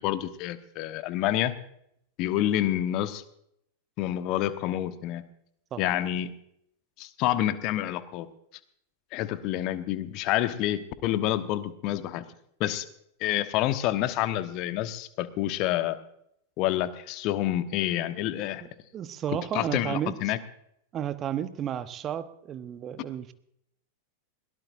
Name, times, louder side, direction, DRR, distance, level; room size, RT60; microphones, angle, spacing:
voice 1, 0.0-1.5 2.2-3.2 4.0-5.2 5.8-6.3 7.0-8.3 9.1-12.2 12.6-12.8 13.2-16.0 16.6-18.6 19.5-20.4, left 13 dB, 40° left, 11 dB, 1.1 m, -28 dB
voice 2, 18.6-20.1 20.9-23.3, right 10 dB, 30° right, 12 dB, 1.0 m, -33 dB
21.5 x 18.0 x 2.6 m, 0.73 s
figure-of-eight pair, 90°, 0 cm